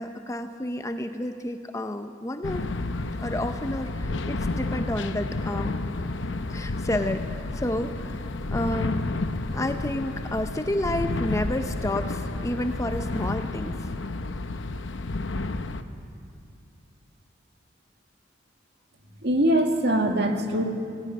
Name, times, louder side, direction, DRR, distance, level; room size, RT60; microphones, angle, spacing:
voice 1, 0.0-2.7 3.2-5.9 6.5-9.2 9.5-13.9, left 1 dB, 15° left, 7 dB, 0.6 m, -30 dB
sound 1, 2.4-15.8, left 2 dB, 65° left, 0.8 m, -31 dB
voice 2, 19.2-20.6, right 1 dB, 55° right, 3 dB, 2.0 m, -22 dB
18.0 x 15.5 x 9.5 m, 2.5 s
head